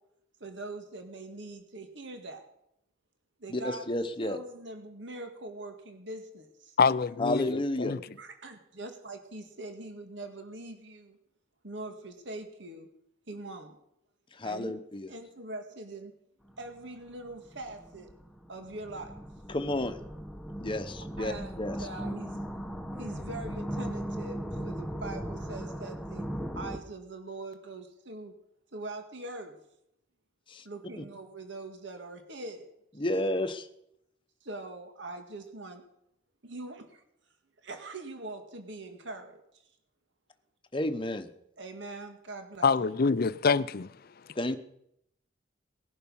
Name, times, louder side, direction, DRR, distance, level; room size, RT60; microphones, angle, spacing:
voice 1, 0.4-2.5 3.4-6.8 8.2-11.2 11.6-12.9 13.3-13.8 14.4-14.7 15.1-16.1 16.6-18.1 18.5-19.2 21.2-22.4 23.0-26.3 26.5-28.3 28.7-29.6 30.6-32.7 34.4-35.8 36.4-37.0 37.6-39.6 41.6-43.0, right 2 dB, 65° right, 2.0 m, -42 dB
voice 2, 3.5-4.4 7.2-8.0 14.4-15.1 19.5-20.0 20.6-21.3 21.6-21.8 30.5-30.6 31.0-31.1 33.0-33.7 40.7-41.3 44.4-44.6, left 1 dB, 25° left, 1.0 m, -31 dB
voice 3, 6.8-8.0 42.6-43.9, left 5 dB, 50° left, 0.5 m, -26 dB
sound 1, 16.5-16.7 17.3-26.8, equal, ahead, 1.0 m, -38 dB
19.5 x 11.0 x 5.6 m
head